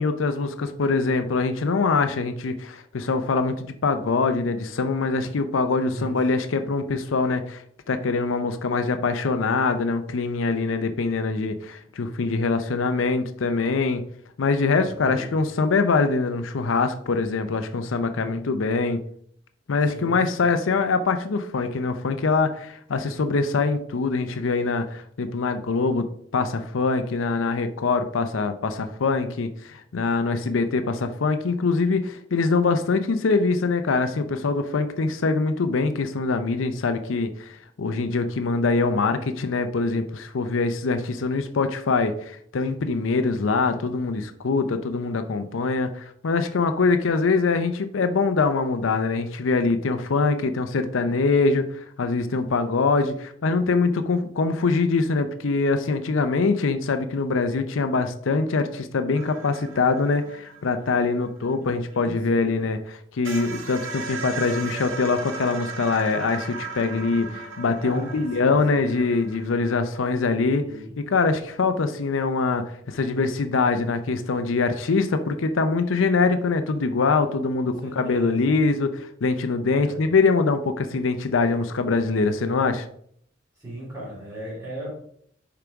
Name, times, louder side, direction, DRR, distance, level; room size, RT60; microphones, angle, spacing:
voice 1, 0.0-7.6 7.9-14.0 14.4-19.0 19.7-26.1 26.3-70.6 71.1-82.9, left 4 dB, 90° left, 9 dB, 0.5 m, -23 dB
voice 2, 14.8-15.4 18.1-18.4 19.9-20.5 61.9-62.4 67.8-68.8 70.6-71.0 72.8-72.9 77.6-78.5 79.7-80.0 82.1-82.6 83.6-84.9, equal, 20° right, -10 dB, 2.9 m, -38 dB
sound 1, 59.1-62.5 62.9-63.0 63.2-70.0, right 4 dB, 90° right, 1.1 m, -37 dB
6.8 x 4.9 x 3.5 m, 0.66 s
head